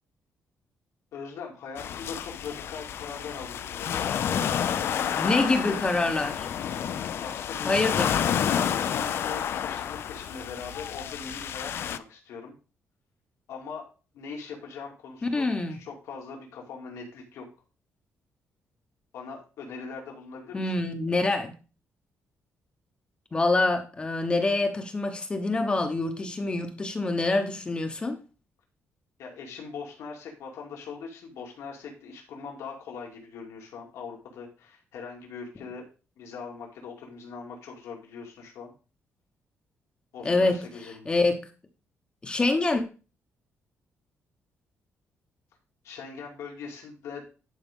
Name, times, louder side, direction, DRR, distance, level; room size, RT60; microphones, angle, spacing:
voice 1, 1.1-5.7 7.2-8.0 8.5-12.5 13.5-13.9 14.1-17.5 19.1-20.7 29.2-35.8 36.2-38.7 40.1-41.1 45.8-47.2, left 5 dB, 90° left, 2.5 m, -41 dB
Shale Beech with distant people & footsteps, 1.8-12.0, left 9 dB, 55° left, 0.5 m, -30 dB
voice 2, 5.1-6.5 7.6-8.2 15.3-15.8 20.5-21.5 23.3-28.2 40.2-41.5 42.2-42.8, left 2 dB, 20° left, 0.9 m, -26 dB
11.0 x 5.0 x 3.6 m
cardioid pair, 155°, 5 cm